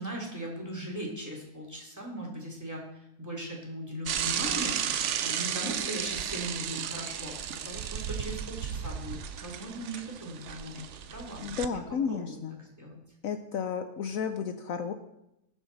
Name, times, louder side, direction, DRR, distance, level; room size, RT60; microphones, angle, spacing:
voice 1, 0.0-2.9 3.2-13.0, right 1 dB, 10° right, -1 dB, 2.9 m, -39 dB
Bicycle / Mechanisms, 4.1-11.7, right 8 dB, 60° right, 0.9 m, -34 dB
voice 2, 11.4-12.6 13.2-14.9, left 6 dB, 65° left, 8 dB, 1.0 m, -32 dB
19.5 x 7.3 x 4.0 m, 0.86 s
omnidirectional pair, 1.6 m